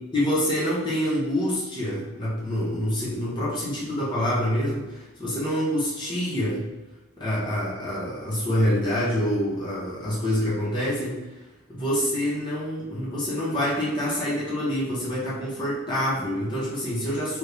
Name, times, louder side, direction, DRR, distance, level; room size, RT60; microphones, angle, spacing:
voice 1, 0.1-6.7 7.2-11.2 11.7-17.4, equal, 20° left, -7 dB, 0.8 m, -26 dB
3.0 x 2.6 x 3.3 m, 1.1 s
head